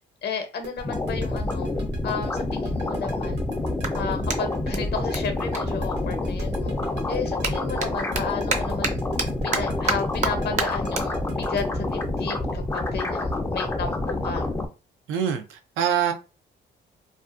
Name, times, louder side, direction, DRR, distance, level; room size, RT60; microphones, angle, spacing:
voice 1, 0.2-1.7 2.0-3.4 3.9-6.7 7.1-9.0 9.4-14.0 14.2-14.5, left 5 dB, 55° left, 0.7 m, -33 dB
sound 1, 0.6-13.4, right 1 dB, 60° right, 0.9 m, -39 dB
sound 2, 0.8-14.7, left 2 dB, 15° left, 0.4 m, -28 dB
Clapping, 3.8-6.5 6.8-13.5, right 4 dB, 35° right, 0.5 m, -33 dB
voice 2, 15.1-16.1, right 8 dB, 90° right, 0.5 m, -24 dB
2.4 x 2.1 x 2.4 m
cardioid pair, 90°, 20 cm